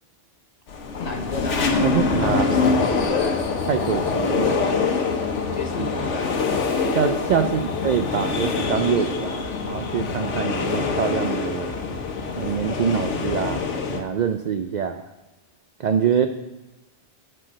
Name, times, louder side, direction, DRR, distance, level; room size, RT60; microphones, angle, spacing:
sound 1, 0.7-14.0, left 4 dB, 85° left, 1.2 m, -24 dB
voice 1, 1.0-3.5 4.5-4.8 5.5-6.4 7.4-7.7, left 2 dB, 40° left, 4 dB, 0.9 m, -34 dB
voice 2, 1.8-2.6 3.7-4.7 5.9-6.0 6.9-11.7 12.4-13.6 13.9-15.0 15.8-16.3, right 7 dB, 60° right, 7 dB, 0.4 m, -24 dB
10.0 x 4.6 x 6.3 m, 1.1 s
omnidirectional pair, 1.2 m